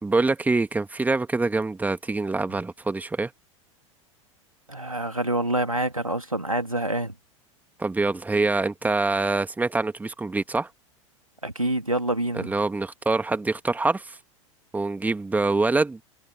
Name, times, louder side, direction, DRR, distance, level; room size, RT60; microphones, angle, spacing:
voice 1, 0.0-3.3 7.8-10.7 12.3-14.2 14.7-16.0, right 3 dB, 10° right, 2.1 m, -25 dB
voice 2, 4.7-7.1 11.4-12.5, right 1 dB, 90° right, 2.4 m, -26 dB
figure-of-eight pair, 85°, 17 cm